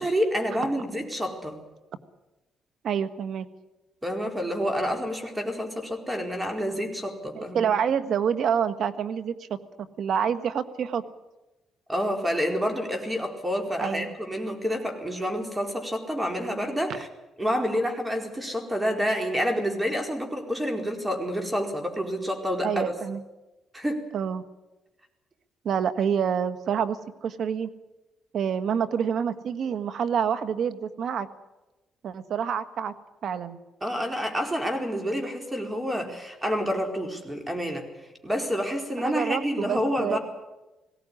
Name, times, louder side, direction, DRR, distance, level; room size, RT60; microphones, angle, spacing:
voice 1, 0.0-1.6 4.0-7.7 11.9-17.1 17.4-22.9 23.7-24.0 33.8-37.9 38.2-40.2, equal, 10° right, 4 dB, 4.5 m, -28 dB
voice 2, 2.8-3.5 7.3-9.3 10.0-11.0 13.8-14.1 22.6-23.2 24.1-24.4 25.6-27.7 28.3-31.3 32.0-32.9 33.2-33.6 39.0-40.2, right 7 dB, 65° right, 12 dB, 1.6 m, -27 dB
20.0 x 17.0 x 10.0 m, 1.0 s
cardioid pair, 90°, 0 cm